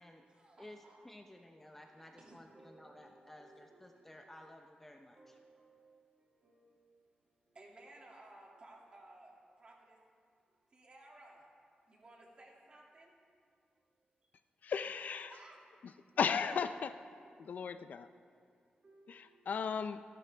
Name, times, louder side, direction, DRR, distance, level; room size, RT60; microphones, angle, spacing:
voice 1, 0.0-1.2 1.7-4.4 4.9-10.0 10.7-11.5 11.9-13.1 13.8-14.3 15.3-16.2 17.1-17.9 18.2-19.8, right 2 dB, 35° right, -2 dB, 2.3 m, -60 dB
voice 2, 1.0-5.4, left 1 dB, 10° left, 3 dB, 0.6 m, -55 dB
voice 3, 14.6-15.3 16.2-17.0 17.4-18.1 19.1-20.0, left 6 dB, 60° left, 11 dB, 0.4 m, -35 dB
27.0 x 12.0 x 3.4 m, 2.3 s
wide cardioid pair, 175°, 3 cm